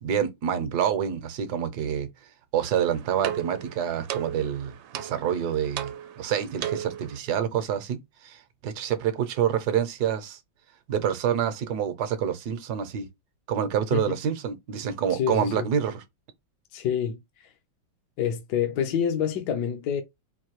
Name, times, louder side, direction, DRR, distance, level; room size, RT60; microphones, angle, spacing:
voice 1, 0.0-2.1 2.5-10.4 10.9-13.1 13.5-16.0, right 8 dB, 65° right, 1.2 m, -27 dB
sound 1, 2.6-7.2, right 10 dB, 85° right, 1.3 m, -36 dB
voice 2, 15.1-15.7 16.7-17.5 18.2-20.0, left 8 dB, 70° left, 1.2 m, -27 dB
4.6 x 2.7 x 2.9 m
omnidirectional pair, 2.0 m